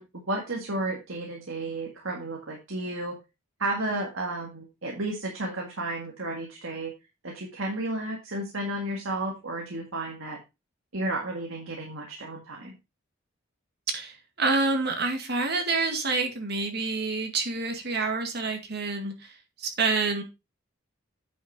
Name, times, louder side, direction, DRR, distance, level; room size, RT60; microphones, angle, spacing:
voice 1, 0.0-3.2 3.6-6.9 7.2-10.4 10.9-12.7, right 2 dB, 75° right, 0 dB, 1.8 m, -32 dB
voice 2, 13.9-20.2, right 3 dB, 50° right, 4 dB, 2.0 m, -28 dB
9.1 x 5.8 x 4.1 m, 0.26 s
head